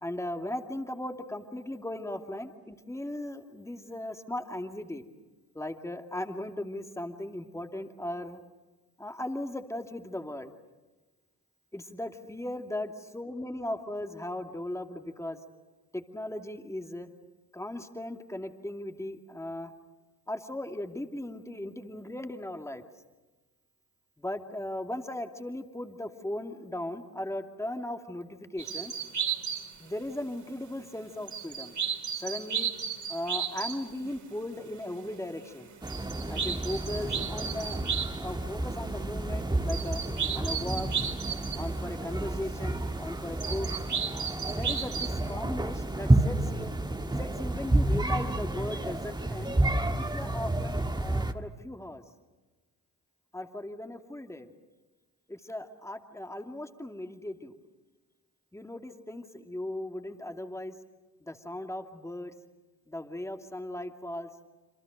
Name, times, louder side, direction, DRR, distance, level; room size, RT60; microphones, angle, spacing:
voice 1, 0.0-5.0 5.5-8.4 9.0-10.5 11.7-15.4 15.9-17.1 17.5-19.7 20.3-22.8 24.2-28.9 29.8-31.8 32.2-32.7 33.1-35.7 36.3-37.8 38.2-40.0 40.3-40.9 41.5-43.7 44.5-46.7 47.2-49.5 50.0-52.0 53.3-54.5 55.3-57.6 58.5-60.7 61.2-62.3 62.9-64.3, left 1 dB, 5° left, 5 dB, 2.6 m, -37 dB
sound 1, 28.6-30.1 31.3-38.2 38.8-38.9 39.7-41.7 43.4-45.3, right 7 dB, 40° right, 4.2 m, -34 dB
sound 2, 35.8-51.3, right 1 dB, 10° right, 1.9 m, -30 dB
28.0 x 27.0 x 6.6 m, 1.2 s
figure-of-eight pair, 50°, 44 cm